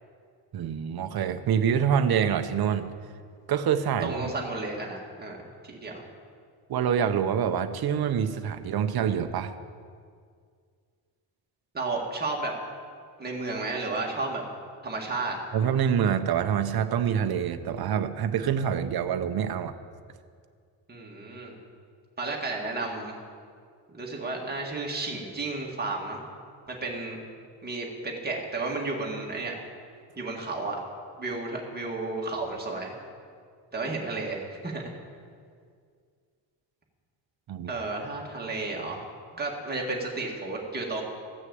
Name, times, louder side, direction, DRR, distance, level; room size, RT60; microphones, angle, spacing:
voice 1, 0.5-2.9 3.5-4.3 6.7-9.5 15.5-19.7 37.5-37.7, right 8 dB, 55° right, 9 dB, 0.8 m, -26 dB
voice 2, 4.0-5.4 5.6-6.0 11.7-12.5 13.2-14.4 14.8-15.4 20.9-21.6 22.2-23.2 23.9-26.2 26.7-27.2 27.6-29.5 30.2-30.8 31.2-32.9 33.7-34.8 37.7-39.1 39.3-41.0, right 3 dB, 20° right, -2 dB, 2.0 m, -32 dB
15.0 x 6.4 x 7.8 m, 2.1 s
wide cardioid pair, 145°, 45 cm